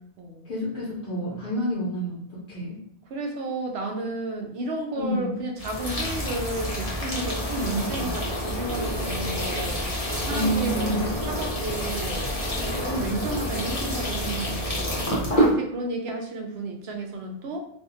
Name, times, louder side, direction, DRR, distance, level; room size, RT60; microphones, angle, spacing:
voice 1, 0.4-2.8 5.0-5.4 10.3-11.0, equal, 65° left, -6 dB, 0.9 m, -29 dB
voice 2, 3.1-12.3 12.8-17.6, right 2 dB, 90° right, 2 dB, 0.8 m, -32 dB
sound 1, 5.6-15.5, equal, 40° left, 0.8 m, -28 dB
2.6 x 2.4 x 2.4 m, 0.69 s
omnidirectional pair, 1.0 m